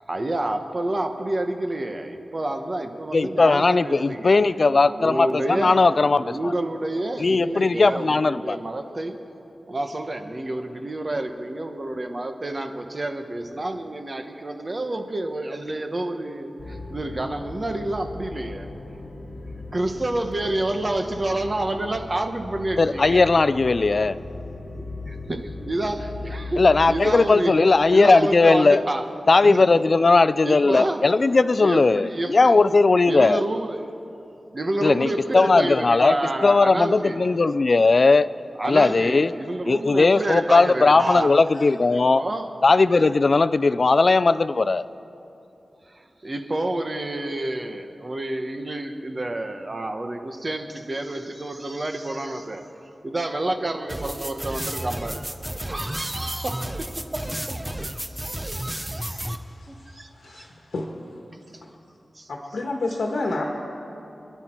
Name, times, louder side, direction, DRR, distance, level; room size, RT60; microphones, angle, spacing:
voice 1, 0.1-4.4 4.9-5.8 6.2-9.2 9.7-18.7 19.7-23.2 24.7-27.5 27.9-29.0 29.4-29.8 30.4-31.0 31.6-32.5 33.1-33.7 34.5-37.2 38.6-41.3 41.9-42.5 45.8-55.2 55.7-57.4 58.1-59.2 59.7-60.5 61.5-61.6 62.1-62.3, right 1 dB, 30° right, 5 dB, 1.1 m, -29 dB
voice 2, 3.1-6.5 7.2-8.6 22.8-24.2 26.6-28.8 29.3-33.4 34.8-36.2 36.4-38.3 38.7-39.3 39.7-42.2 42.6-44.9, left 3 dB, 45° left, 13 dB, 0.4 m, -18 dB
sound 1, 16.6-27.2, left 2 dB, 25° left, 2.3 m, -38 dB
sound 2, 53.9-59.4, right 1 dB, 10° right, 0.8 m, -32 dB
voice 3, 60.2-60.9 62.3-63.4, left 2 dB, 90° left, 0 dB, 1.4 m, -29 dB
28.0 x 10.5 x 4.5 m, 2.8 s
wide cardioid pair, 120°, 0 cm